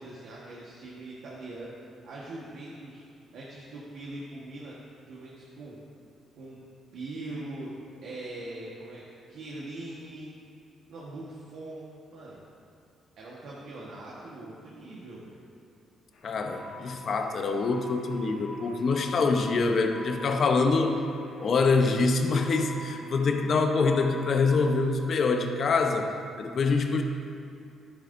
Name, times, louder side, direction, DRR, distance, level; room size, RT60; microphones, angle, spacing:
voice 1, 0.0-1.7 2.0-3.0 3.3-4.8 5.0-5.8 6.4-6.6 6.9-7.7 8.0-10.3 10.9-12.4 13.2-15.4, right 2 dB, 75° right, -6 dB, 1.4 m, -41 dB
sound 1, 16.1-24.8, left 1 dB, 80° left, 1.7 m, -45 dB
voice 2, 16.2-21.0 21.4-26.1 26.4-27.0, left 4 dB, 55° left, 5 dB, 0.8 m, -25 dB
11.5 x 10.5 x 2.6 m, 2.5 s
cardioid pair, 90°, 0 cm